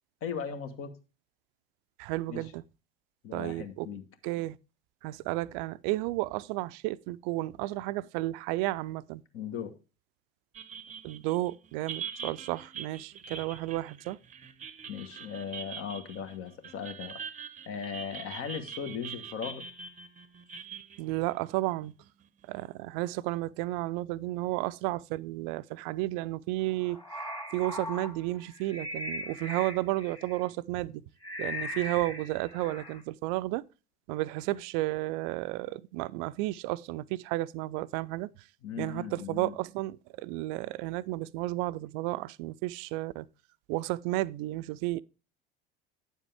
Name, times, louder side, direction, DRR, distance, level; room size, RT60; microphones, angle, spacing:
voice 1, 0.2-0.9 2.3-2.4 3.2-4.0 9.3-9.7 14.9-17.2 17.7-19.6 38.6-39.5, left 7 dB, 50° left, 1.3 m, -38 dB
voice 2, 2.0-2.6 3.3-3.9 4.2-4.6 5.0-9.2 11.0-14.2 21.0-21.9 22.5-27.0 27.5-31.0 31.4-33.6 34.1-38.3 38.8-43.3 43.7-45.0, right 18 dB, 55° right, 0.5 m, -32 dB
sound 1, 10.5-22.3, right 6 dB, 25° right, 0.7 m, -43 dB
sound 2, 26.7-30.4 31.2-33.0, left 1 dB, 15° left, 1.8 m, -39 dB
9.3 x 7.3 x 3.4 m
figure-of-eight pair, 65°, 29 cm